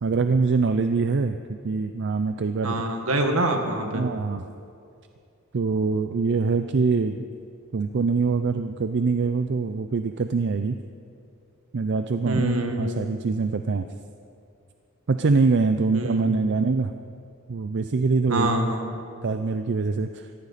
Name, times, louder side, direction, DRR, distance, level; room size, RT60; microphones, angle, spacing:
voice 1, 0.0-2.8 3.9-4.5 5.5-7.3 7.7-10.8 11.7-13.9 15.1-16.9 17.5-18.5 19.2-20.3, right 4 dB, 55° right, 9 dB, 0.5 m, -24 dB
voice 2, 2.6-4.1 12.3-13.0 15.9-16.4 18.3-19.0, right 1 dB, 75° right, 4 dB, 1.8 m, -26 dB
19.0 x 15.0 x 4.2 m, 2.5 s
head